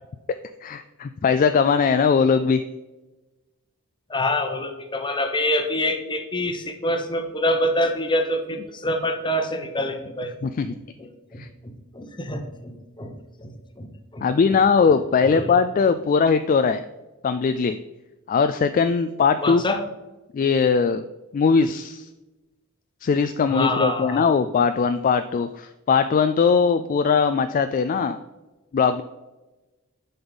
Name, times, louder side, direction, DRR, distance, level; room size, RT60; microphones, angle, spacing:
voice 1, 0.6-2.6 10.4-10.7 11.4-11.5 14.2-16.8 17.2-17.8 18.3-19.6 20.3-21.0 21.3-22.1 23.0-28.2 28.7-29.0, left 5 dB, 40° left, 10 dB, 0.3 m, -20 dB
voice 2, 4.1-10.3 10.7-13.1 13.4-14.6 14.8-14.9 15.2-15.6 19.4-19.8 23.5-24.3, left 1 dB, 20° left, 6 dB, 0.9 m, -26 dB
7.8 x 5.4 x 4.0 m, 1.1 s
head